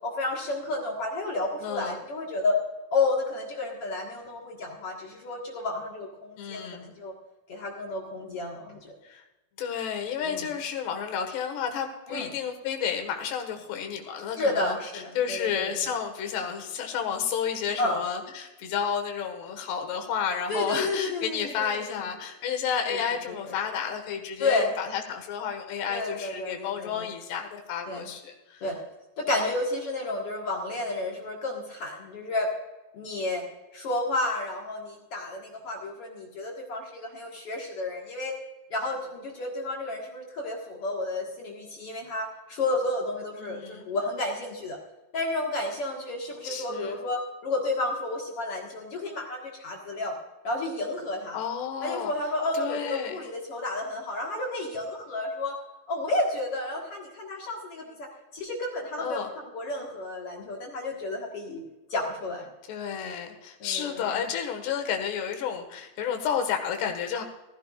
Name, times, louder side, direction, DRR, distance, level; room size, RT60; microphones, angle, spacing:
voice 1, 0.0-2.5 2.9-7.1 7.5-8.9 10.2-10.4 12.1-12.3 14.4-15.7 17.8-18.0 20.5-21.8 22.9-23.0 24.4-24.7 25.9-27.1 27.9-28.1 28.6-28.8 29.2-32.5 32.9-33.4 33.7-38.4 38.7-44.8 45.1-50.1 50.4-51.4 51.8-55.6 55.9-61.6 61.9-62.5 63.6-64.1, left 2 dB, 55° left, -1 dB, 1.7 m, -31 dB
voice 2, 1.6-2.0 6.4-6.9 9.0-9.2 9.6-28.6 29.3-29.4 43.4-43.8 46.4-47.0 51.3-52.1 52.5-53.2 59.0-59.3 62.7-67.2, left 7 dB, 80° left, 4 dB, 3.7 m, -31 dB
15.5 x 15.0 x 2.4 m, 1.0 s
omnidirectional pair, 4.8 m